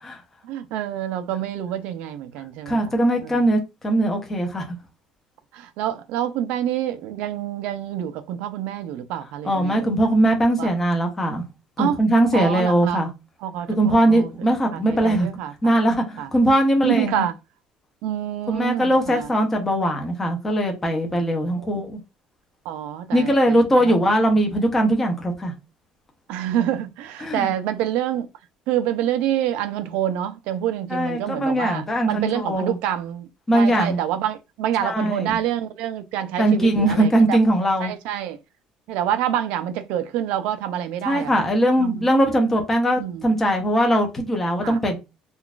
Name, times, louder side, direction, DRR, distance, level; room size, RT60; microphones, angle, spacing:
voice 1, 0.4-2.9 3.2-3.4 5.5-10.0 10.6-10.7 11.8-12.0 12.3-13.1 13.4-14.3 14.7-15.7 16.2-16.3 16.8-17.3 18.0-19.3 21.6-21.7 22.7-23.6 26.3-28.3 28.7-33.3 33.5-37.4 37.8-38.4 38.9-41.4 41.8-42.1 43.0-43.2 44.6-44.8, right 11 dB, 70° right, 0.5 m, -27 dB
voice 2, 2.7-4.8 9.4-11.4 11.8-13.1 13.7-15.3 15.6-17.3 18.5-22.0 23.1-25.5 27.2-27.5 30.9-32.8 33.5-34.0 34.8-35.4 36.4-37.9 41.0-45.0, right 1 dB, 10° left, 0.7 m, -20 dB
3.7 x 2.4 x 2.3 m
cardioid pair, 170°, 2 cm